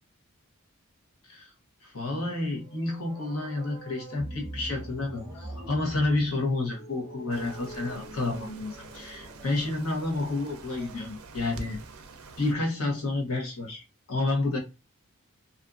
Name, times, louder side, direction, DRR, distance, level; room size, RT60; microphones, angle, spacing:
voice 1, 1.8-11.8 12.4-13.8 14.1-14.6, left 2 dB, 80° left, 0 dB, 1.0 m, -30 dB
sound 1, 2.2-10.0, right 1 dB, 30° left, 1.0 m, -49 dB
sound 2, 4.2-11.0, right 1 dB, 15° right, 0.4 m, -45 dB
sound 3, 7.3-12.5, right 3 dB, 80° right, 0.4 m, -46 dB
2.6 x 2.5 x 2.3 m, 0.26 s
head